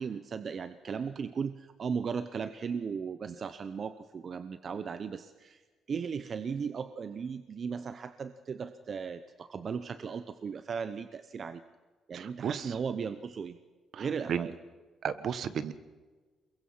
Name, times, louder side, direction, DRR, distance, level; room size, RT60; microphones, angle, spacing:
voice 1, 0.0-5.6 5.9-11.6 12.1-13.6 14.0-14.5, right 6 dB, 50° right, 11 dB, 0.8 m, -36 dB
voice 2, 12.1-12.7 13.9-14.5 15.0-15.7, right 8 dB, 65° right, 13 dB, 1.3 m, -34 dB
23.0 x 22.0 x 5.6 m, 1.4 s
cardioid pair, 90°, 0 cm